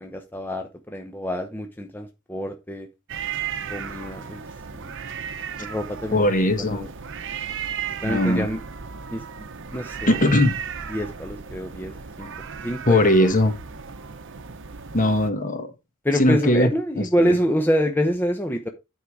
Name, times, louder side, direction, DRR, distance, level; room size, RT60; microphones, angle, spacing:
voice 1, 0.0-2.9 3.7-4.4 4.8-4.9 5.6-6.9 8.0-8.6 9.1-9.2 9.7-10.2 10.9-11.9 12.2-12.3 12.6-13.3 16.0-18.7, equal, 10° left, 0.7 m, -26 dB
sound 1, 3.1-15.3, right 7 dB, 60° right, 0.9 m, -35 dB
voice 2, 6.1-6.9 8.0-8.5 10.1-10.5 12.9-13.5 14.9-15.7 16.1-16.7 16.9-17.3, left 1 dB, 40° left, 1.5 m, -19 dB
9.5 x 4.7 x 4.8 m
head